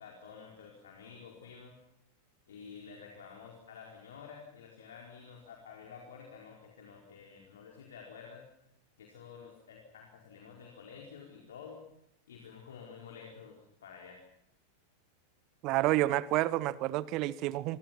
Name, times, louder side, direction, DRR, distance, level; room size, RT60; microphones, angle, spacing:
voice 1, 0.0-1.8 2.5-8.5 9.0-11.8 12.3-14.2, left 6 dB, 65° left, 0 dB, 4.6 m, -50 dB
voice 2, 15.6-17.8, right 16 dB, 40° right, 19 dB, 0.9 m, -29 dB
28.0 x 24.0 x 6.0 m, 0.79 s
figure-of-eight pair, 90°, 0 cm